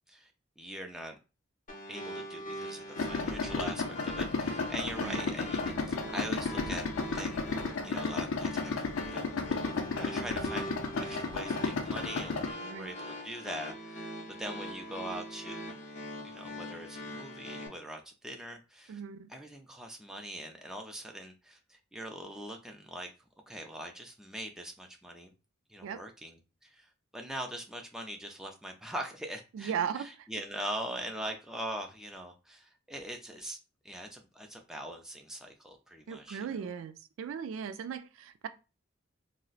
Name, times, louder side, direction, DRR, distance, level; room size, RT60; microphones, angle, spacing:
voice 1, 0.6-1.2 1.9-6.9 7.1-7.5 7.8-9.3 9.6-14.1 14.4-15.7 16.2-19.0 19.3-23.1 23.5-25.3 25.7-33.6 33.8-36.7, equal, 5° right, 0.4 m, -42 dB
sound 1, 1.7-17.7, left 1 dB, 40° left, 0.7 m, -42 dB
Idling, 3.0-12.5, left 4 dB, 90° left, 0.5 m, -33 dB
voice 2, 5.0-5.3 12.6-12.9 18.9-19.3 25.8-26.0 29.5-30.3 36.1-38.5, right 7 dB, 80° right, 0.3 m, -37 dB
3.8 x 2.0 x 2.4 m
head